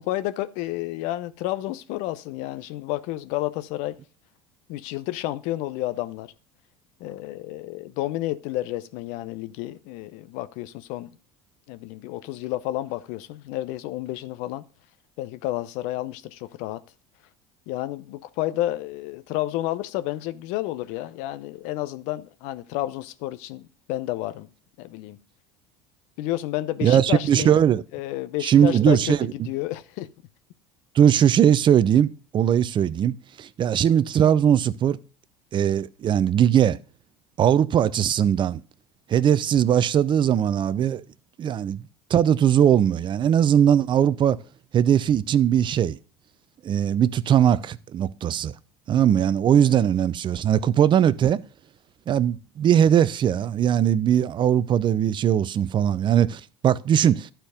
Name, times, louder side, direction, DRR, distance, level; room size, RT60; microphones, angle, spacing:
voice 1, 0.0-4.0 4.7-6.3 7.0-11.1 11.7-14.6 15.2-16.8 17.7-24.5 24.8-25.2 26.2-27.6 27.9-30.1, left 15 dB, 65° left, 0.7 m, -30 dB
voice 2, 26.8-27.8 28.4-29.3 30.9-35.0 35.5-36.8 37.4-38.6 39.1-41.0 41.4-41.8 42.1-44.4 44.7-46.0 46.6-48.5 48.9-51.4 52.1-57.3, right 9 dB, 35° right, 0.5 m, -20 dB
11.5 x 4.5 x 5.0 m
hypercardioid pair, 85°, 14 cm